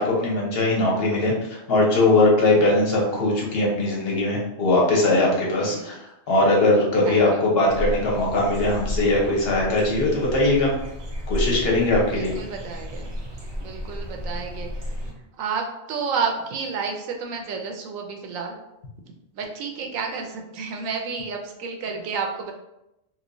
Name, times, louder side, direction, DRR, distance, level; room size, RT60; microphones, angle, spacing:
voice 1, 0.0-10.7 11.3-12.4, left 2 dB, 50° left, -3 dB, 1.1 m, -20 dB
voice 2, 5.6-6.0 7.1-7.4 12.1-13.1 13.6-14.9 15.4-18.5 19.3-22.5, right 5 dB, 75° right, 2 dB, 1.0 m, -31 dB
sound 1, 7.7-15.1, equal, 45° right, 0.3 m, -32 dB
3.3 x 3.0 x 2.6 m, 0.88 s
omnidirectional pair, 1.4 m